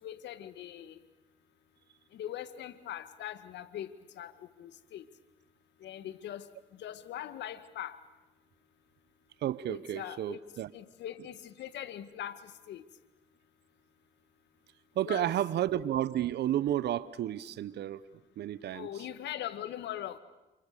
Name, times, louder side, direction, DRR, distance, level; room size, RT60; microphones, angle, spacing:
voice 1, 0.0-1.0 2.1-5.1 5.8-6.5 6.8-8.0 9.7-10.4 10.7-12.8 15.1-15.3 18.7-20.2, left 11 dB, 70° left, 2.0 m, -41 dB
voice 2, 9.4-10.7 14.9-18.0 18.4-19.0, right 12 dB, 65° right, 1.1 m, -32 dB
28.5 x 28.5 x 6.9 m
supercardioid pair, 65°, 19 cm